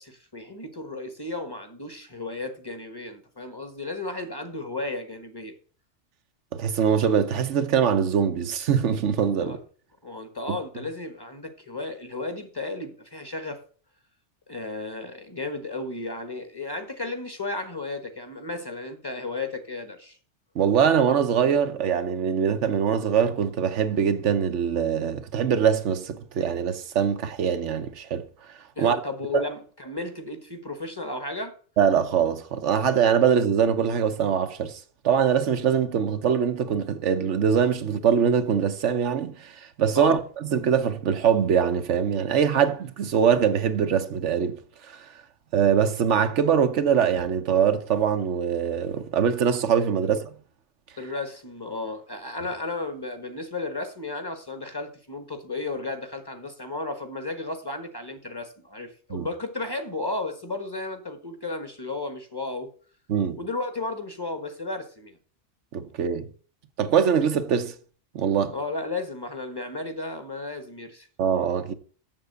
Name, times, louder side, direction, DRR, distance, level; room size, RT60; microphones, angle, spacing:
voice 1, 0.0-5.5 9.4-9.6 10.0-13.6 14.5-20.2 28.8-31.5 39.9-40.2 50.0-50.1 51.0-62.7 63.4-65.2 68.5-71.1, left 2 dB, 20° left, 1.3 m, -34 dB
voice 2, 6.5-9.6 10.5-10.6 20.5-28.2 28.8-29.0 29.3-29.4 31.8-44.6 44.9-45.1 45.5-50.3 59.1-59.3 63.1-63.4 65.7-66.3 66.8-67.7 68.1-68.5 71.2-71.7, right 7 dB, 90° right, 1.2 m, -23 dB
7.5 x 7.0 x 6.7 m
omnidirectional pair, 1.2 m